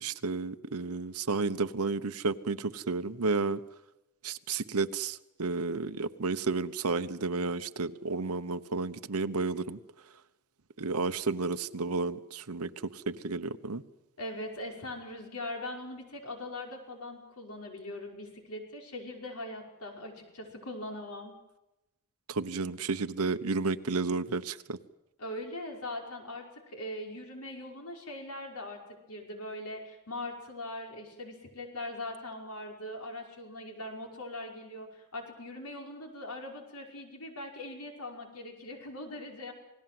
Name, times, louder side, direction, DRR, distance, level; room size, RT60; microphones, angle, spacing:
voice 1, 0.0-3.6 4.2-9.8 10.8-13.8 22.3-24.8, right 4 dB, 85° right, 1.0 m, -32 dB
voice 2, 14.2-21.3 25.2-28.8 29.1-39.5, left 1 dB, 85° left, 5.6 m, -41 dB
28.0 x 19.0 x 7.8 m
head